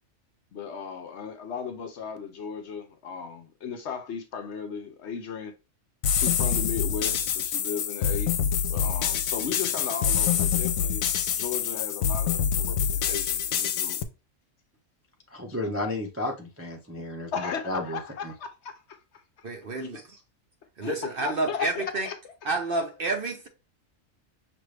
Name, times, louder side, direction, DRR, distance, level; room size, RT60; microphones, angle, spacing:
voice 1, 0.5-5.5 6.1-8.3 8.7-11.0 11.3-14.0 17.3-19.0 19.4-19.5 20.8-22.2, left 6 dB, 60° left, 0.9 m, -36 dB
sound 1, 6.0-14.0, left 8 dB, 85° left, 1.0 m, -26 dB
voice 2, 15.3-18.3, left 1 dB, 15° right, 0.5 m, -33 dB
voice 3, 19.4-20.0 20.8-22.1 22.4-23.5, right 3 dB, 50° right, 0.9 m, -29 dB
5.9 x 2.5 x 3.2 m
omnidirectional pair, 1.4 m